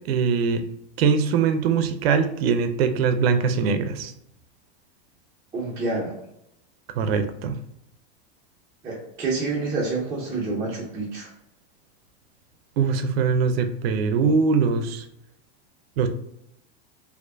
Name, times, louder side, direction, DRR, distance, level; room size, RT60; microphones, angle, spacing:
voice 1, 0.1-0.6 1.0-4.1 7.0-7.6 12.8-15.0 16.0-16.1, right 5 dB, 70° right, 8 dB, 0.6 m, -22 dB
voice 2, 5.5-6.2 8.8-11.3, right 3 dB, 10° right, -8 dB, 0.7 m, -28 dB
4.3 x 2.7 x 2.6 m, 0.77 s
supercardioid pair, 165°, 32 cm